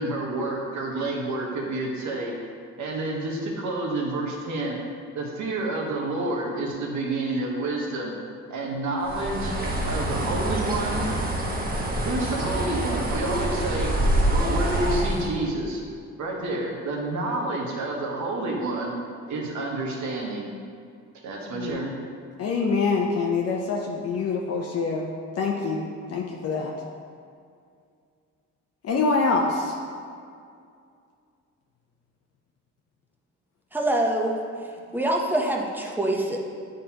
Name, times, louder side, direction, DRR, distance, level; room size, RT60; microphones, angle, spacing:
voice 1, 0.0-2.3 2.8-4.8 5.1-8.1 8.5-9.5 9.9-11.1 12.0-14.0 14.3-15.8 16.2-19.0 19.3-20.5 21.2-21.9, right 2 dB, 70° right, -1 dB, 1.1 m, -29 dB
Bird, 9.0-15.3, right 1 dB, 30° right, 1.0 m, -26 dB
voice 2, 21.5-21.9 22.4-25.1 25.4-26.7 28.8-29.7, left 4 dB, 55° left, -1 dB, 0.6 m, -25 dB
voice 3, 33.7-34.4 34.9-36.4, right 1 dB, 5° right, -1 dB, 0.8 m, -24 dB
8.9 x 3.8 x 2.9 m, 2.3 s
cardioid pair, 90°, 30 cm